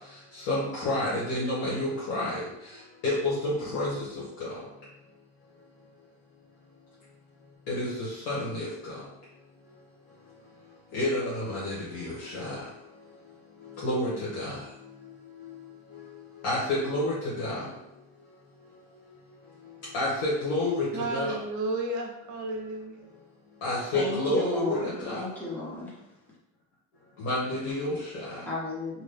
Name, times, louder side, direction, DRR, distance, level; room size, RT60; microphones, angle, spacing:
voice 1, 0.3-2.5 3.0-4.1 4.4-4.5 7.7-9.0 10.9-12.6 13.8-14.6 16.4-17.7 19.0-19.1 19.9-21.4 23.6-25.2 27.2-28.4, left 1 dB, 85° left, -8 dB, 1.1 m, -29 dB
voice 2, 20.9-23.1, right 2 dB, 55° right, 3 dB, 0.7 m, -32 dB
voice 3, 23.9-26.0 28.4-29.0, left 2 dB, 5° left, -7 dB, 0.8 m, -34 dB
2.8 x 2.3 x 3.3 m, 0.85 s
cardioid pair, 140°, 35 cm